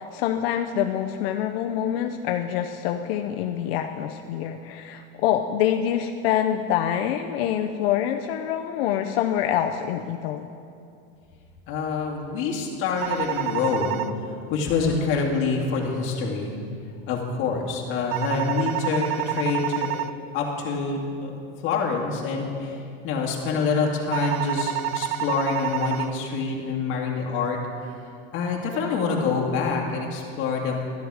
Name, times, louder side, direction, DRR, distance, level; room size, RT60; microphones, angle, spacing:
voice 1, 0.0-10.5, left 10 dB, 80° left, 4 dB, 0.6 m, -26 dB
voice 2, 11.7-14.0 14.5-16.6 17.1-19.9 20.3-21.3 21.6-22.8 23.0-27.6 28.3-30.9, left 4 dB, 40° left, -1 dB, 2.0 m, -26 dB
sound 1, 13.0-14.1 18.1-20.1 24.1-26.1, right 13 dB, 80° right, 0.6 m, -28 dB
12.0 x 11.5 x 4.8 m, 2.5 s
cardioid pair, 175°, 29 cm